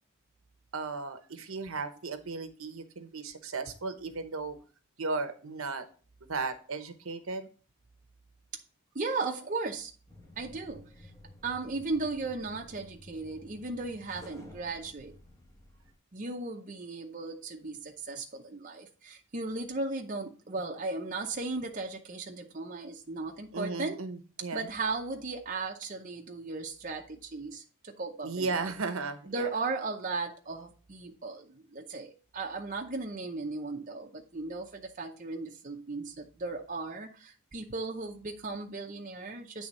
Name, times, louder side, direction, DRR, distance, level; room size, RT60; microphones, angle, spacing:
voice 1, 0.7-4.6 5.0-5.9 6.3-7.5 23.5-24.7 28.2-29.5, right 4 dB, 65° right, 9 dB, 0.9 m, -35 dB
voice 2, 8.9-9.9 10.4-11.1 11.4-15.1 16.1-24.0 24.5-28.7 29.3-39.7, right 3 dB, 35° right, 2 dB, 0.7 m, -36 dB
sound 1, 10.1-15.9, left 1 dB, 15° left, 1.0 m, -52 dB
8.7 x 3.5 x 5.3 m, 0.39 s
head